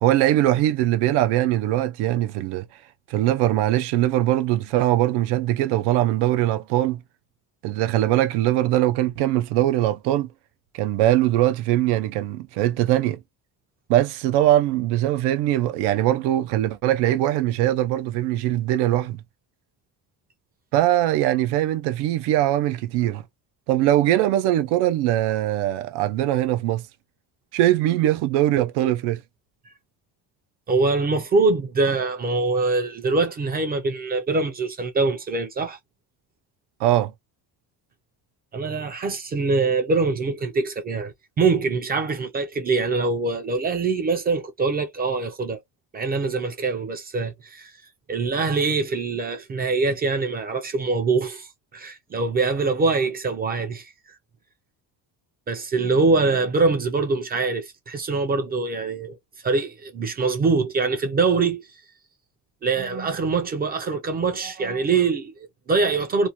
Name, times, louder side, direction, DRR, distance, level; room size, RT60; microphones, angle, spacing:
voice 1, 0.0-2.7 3.1-7.0 7.6-10.3 10.7-13.2 13.9-19.2 20.7-23.2 23.7-26.8 27.5-29.2 36.8-37.1, right 14 dB, 90° right, 0.5 m, -21 dB
voice 2, 30.7-35.8 38.5-45.6 45.9-47.7 48.1-53.9 55.5-59.2 59.4-61.7 62.6-66.3, right 4 dB, 25° right, 0.3 m, -23 dB
2.5 x 2.1 x 2.8 m
cardioid pair, 165°, 39 cm